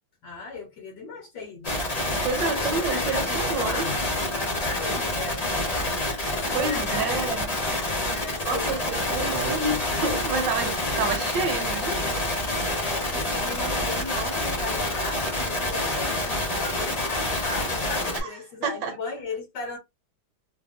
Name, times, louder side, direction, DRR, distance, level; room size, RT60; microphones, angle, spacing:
voice 1, 0.2-1.8 2.3-7.4 8.1-9.2 12.7-19.8, left 3 dB, 65° left, 1.2 m, -37 dB
sound 1, 1.6-18.2, left 1 dB, 35° left, 0.6 m, -27 dB
voice 2, 2.2-3.9 6.5-7.5 8.4-12.0 18.1-18.9, right 4 dB, 65° right, 1.3 m, -29 dB
3.3 x 2.1 x 2.5 m
omnidirectional pair, 2.2 m